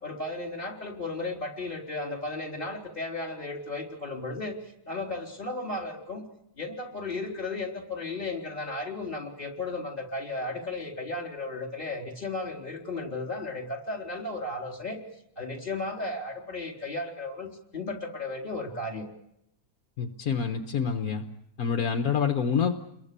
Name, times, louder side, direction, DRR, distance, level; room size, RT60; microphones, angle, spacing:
voice 1, 0.0-4.6 4.9-6.2 6.6-15.0 15.4-19.1, left 2 dB, 35° left, 2 dB, 4.1 m, -34 dB
voice 2, 20.0-21.2 21.6-22.7, left 6 dB, 70° left, 6 dB, 1.7 m, -27 dB
29.5 x 22.5 x 6.8 m, 0.79 s
omnidirectional pair, 1.6 m